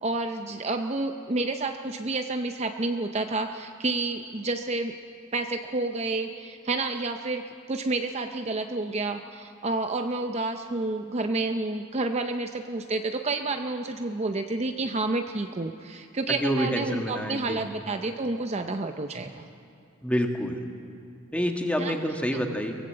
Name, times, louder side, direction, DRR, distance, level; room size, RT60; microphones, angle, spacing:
voice 1, 0.0-4.9 5.3-19.4 21.8-22.0 22.3-22.4, right 2 dB, 30° right, 6 dB, 0.6 m, -29 dB
voice 2, 16.4-17.6 20.0-20.6 21.3-22.7, equal, 5° left, 3 dB, 1.6 m, -27 dB
23.0 x 18.0 x 7.8 m, 2.5 s
head